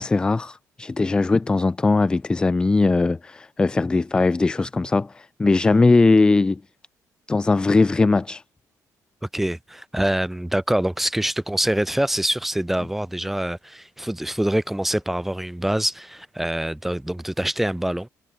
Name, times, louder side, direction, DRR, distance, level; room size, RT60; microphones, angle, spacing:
voice 1, 0.0-6.6 7.3-8.4, left 3 dB, 15° left, 0.5 m, -19 dB
voice 2, 9.3-18.1, right 1 dB, 5° right, 1.8 m, -25 dB
cardioid pair, 160°, 7 cm